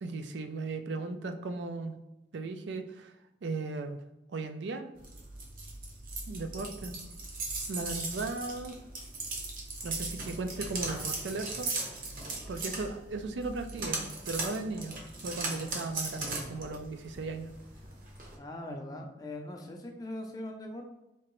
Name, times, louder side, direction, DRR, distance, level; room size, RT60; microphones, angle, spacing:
voice 1, 0.0-2.0 2.3-3.1 3.4-4.0 4.3-4.9 6.3-6.9 7.7-8.8 9.8-11.7 12.5-15.0 15.2-17.5, right 3 dB, 85° right, 7 dB, 0.4 m, -36 dB
sound 1, 5.0-18.3, right 3 dB, 50° right, 0.8 m, -38 dB
voice 2, 18.4-21.0, left 1 dB, 20° left, 2 dB, 0.4 m, -41 dB
4.5 x 2.9 x 3.0 m, 0.93 s
head